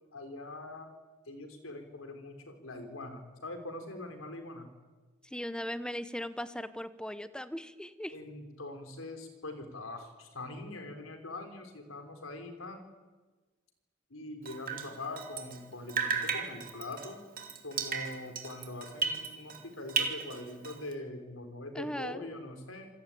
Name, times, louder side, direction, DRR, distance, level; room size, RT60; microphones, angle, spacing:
voice 1, 0.1-0.9 1.3-4.7 8.1-12.9 14.1-17.2 17.6-22.9, left 2 dB, 90° left, 6 dB, 4.4 m, -43 dB
voice 2, 5.2-8.2 21.7-22.2, equal, 5° left, 13 dB, 1.0 m, -38 dB
Drip, 14.4-15.6 15.9-19.6 19.9-20.9, right 5 dB, 45° right, 2.8 m, -35 dB
27.5 x 18.0 x 9.3 m, 1.3 s
head